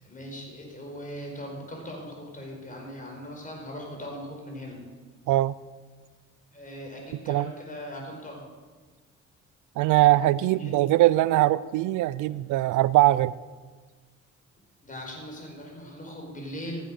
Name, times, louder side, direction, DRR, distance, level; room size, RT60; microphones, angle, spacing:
voice 1, 0.0-4.8 6.5-8.4 10.5-10.8 12.3-12.4 14.8-16.8, equal, 25° left, 0 dB, 4.8 m, -39 dB
voice 2, 9.8-13.3, right 16 dB, 85° right, 19 dB, 0.5 m, -21 dB
15.0 x 8.5 x 6.5 m, 1.4 s
cardioid pair, 90°, 30 cm